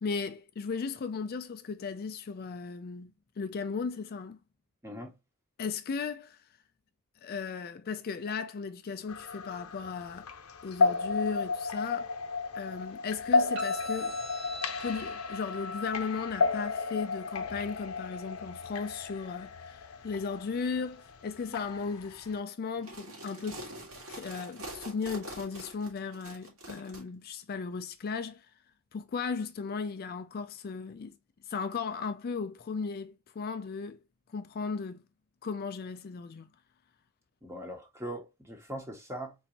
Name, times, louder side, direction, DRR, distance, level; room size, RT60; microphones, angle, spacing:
voice 1, 0.0-4.4 5.6-6.4 7.2-10.3 10.6-12.1 12.5-14.2 14.8-23.7 24.1-28.5 28.9-31.2 31.5-34.0 34.3-35.0 35.4-36.5, left 5 dB, 45° left, 0.4 m, -36 dB
voice 2, 4.8-5.1 37.4-39.3, right 1 dB, 15° right, 1.2 m, -40 dB
sound 1, 9.1-22.4, left 4 dB, 90° left, 0.7 m, -33 dB
sound 2, 13.6-21.5, left 2 dB, 70° right, 2.2 m, -47 dB
sound 3, 22.7-27.0, right 1 dB, 85° right, 2.3 m, -44 dB
4.3 x 3.9 x 2.9 m
head